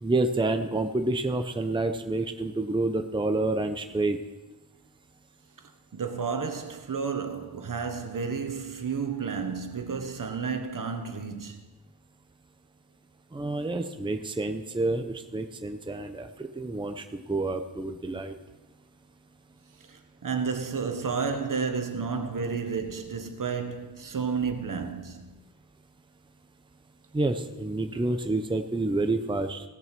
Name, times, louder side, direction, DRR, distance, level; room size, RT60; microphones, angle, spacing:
voice 1, 0.0-4.2 13.3-18.3 27.1-29.7, right 2 dB, 15° right, 0.8 m, -28 dB
voice 2, 5.9-11.6 19.9-25.4, right 5 dB, 60° right, 1.5 m, -31 dB
17.0 x 7.8 x 6.0 m
wide cardioid pair, 125°, 37 cm